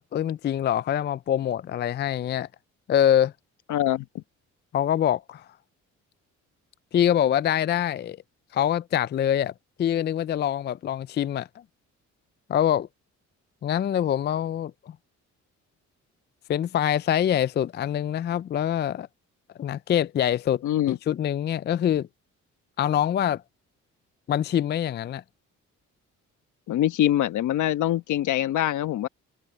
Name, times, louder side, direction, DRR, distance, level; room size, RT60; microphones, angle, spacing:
voice 1, 0.0-2.5 2.9-3.3 4.7-5.5 6.9-8.2 8.5-9.5 9.8-11.5 12.5-12.9 13.6-15.0 16.5-19.1 19.6-22.1 22.8-23.4 24.3-25.2, left 10 dB, 35° left, 0.4 m, -24 dB
voice 2, 3.7-4.2 20.6-21.0 26.7-29.1, left 12 dB, 80° left, 1.3 m, -24 dB
cardioid pair, 90°, 30 cm